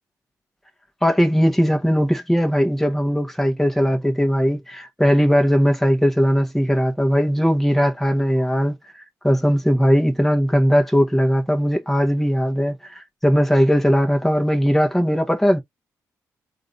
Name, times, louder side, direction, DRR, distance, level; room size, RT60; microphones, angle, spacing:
voice 1, 1.0-8.8 9.2-15.6, equal, 5° left, 1.1 m, -19 dB
3.6 x 2.7 x 3.8 m
hypercardioid pair, 40°, 8 cm